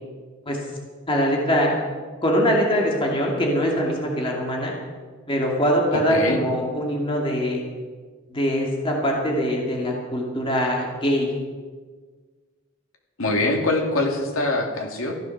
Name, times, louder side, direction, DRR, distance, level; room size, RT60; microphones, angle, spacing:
voice 1, 1.1-1.8 2.2-4.7 5.3-7.6 8.3-11.3, equal, 25° left, -1 dB, 2.4 m, -22 dB
voice 2, 5.9-6.4 13.2-15.2, left 2 dB, 75° left, 1 dB, 2.7 m, -23 dB
14.5 x 11.5 x 6.6 m, 1.5 s
head